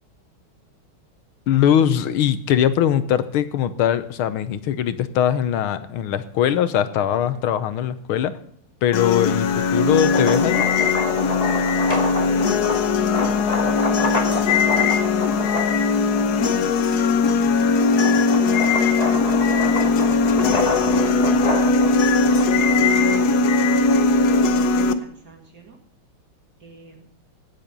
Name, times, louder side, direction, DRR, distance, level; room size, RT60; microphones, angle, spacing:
voice 1, 1.5-8.4 8.8-10.6, left 10 dB, 90° left, 13 dB, 1.7 m, -21 dB
sound 1, 8.9-24.9, left 4 dB, 60° left, 1.2 m, -19 dB
sound 2, 10.1-16.5 17.1-24.3, left 1 dB, 20° left, 1.7 m, -28 dB
voice 2, 12.2-15.9 17.4-18.4 19.1-22.3 23.0-25.8 26.6-27.0, right 4 dB, 50° right, 3 dB, 2.6 m, -46 dB
17.0 x 7.7 x 5.2 m, 0.66 s
omnidirectional pair, 2.3 m